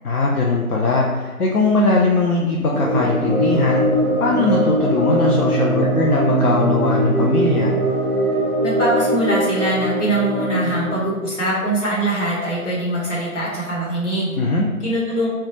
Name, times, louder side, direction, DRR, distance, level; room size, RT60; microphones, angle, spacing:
voice 1, 0.0-3.9 4.2-7.7 14.4-14.7, left 2 dB, 80° left, -3 dB, 0.5 m, -19 dB
sound 1, 2.7-10.9, right 1 dB, ahead, 0.3 m, -21 dB
voice 2, 8.6-14.3 14.8-15.3, right 1 dB, 55° left, -6 dB, 1.1 m, -22 dB
2.2 x 2.1 x 3.1 m, 1.3 s
figure-of-eight pair, 165°, 44 cm